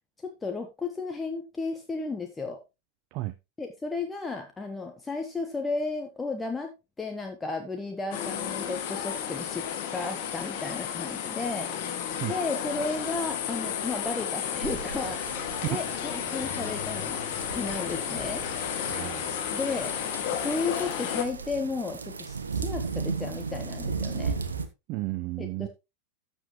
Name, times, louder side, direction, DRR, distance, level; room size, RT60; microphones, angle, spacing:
voice 1, 0.2-2.6 3.6-9.7 9.9-11.7 12.3-17.2 17.5-18.4 19.5-19.9 20.3-24.3 25.4-25.7, left 3 dB, 10° left, 1.3 m, -34 dB
sound 1, 8.1-21.2, left 8 dB, 50° left, 2.1 m, -32 dB
sound 2, 14.6-24.7, right 4 dB, 75° right, 1.1 m, -36 dB
voice 2, 18.9-19.5 24.9-25.7, right 19 dB, 40° right, 0.6 m, -33 dB
13.0 x 7.2 x 3.1 m
figure-of-eight pair, 90°, 0 cm